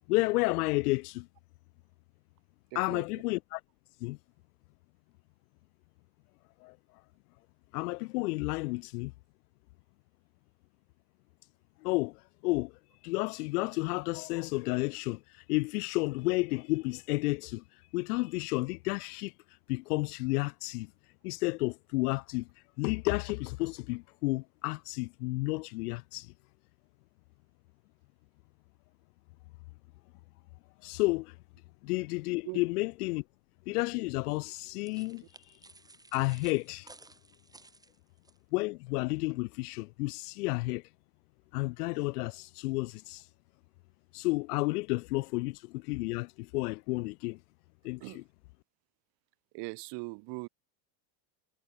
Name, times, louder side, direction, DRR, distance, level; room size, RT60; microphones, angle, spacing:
voice 1, 0.1-1.3 2.7-3.6 4.0-4.2 6.6-6.7 7.7-9.1 11.8-12.7 13.0-15.2 15.5-17.6 17.9-19.3 19.7-20.9 21.2-22.5 22.8-26.3 30.8-31.3 31.8-33.2 33.7-35.2 36.1-36.9 38.5-40.8 41.5-43.2 44.1-47.4 47.8-48.2, left 24 dB, 85° left, 1.6 m, -31 dB
voice 2, 2.7-3.1 32.5-32.6 48.0-48.2 49.5-50.5, right 30 dB, 65° right, 1.8 m, -40 dB
sound 1, 34.3-38.4, right 2 dB, 10° right, 3.4 m, -56 dB
supercardioid pair, 125°, 45 cm